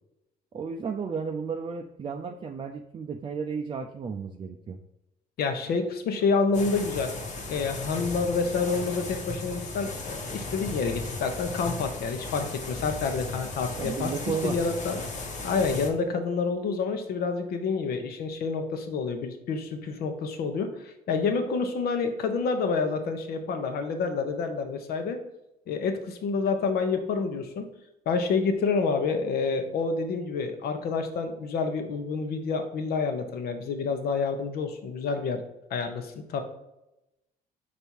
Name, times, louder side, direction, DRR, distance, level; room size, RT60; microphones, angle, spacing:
voice 1, 0.5-4.8 13.8-14.6, right 5 dB, 30° right, 3 dB, 0.5 m, -33 dB
voice 2, 5.4-7.1 7.5-15.0 15.4-25.2 25.7-27.7 28.1-35.4 35.7-36.4, left 4 dB, 65° left, 6 dB, 1.0 m, -28 dB
sound 1, 6.5-15.9, left 2 dB, 45° left, 1.3 m, -36 dB
5.3 x 4.2 x 4.6 m, 0.92 s
cardioid pair, 110°, 17 cm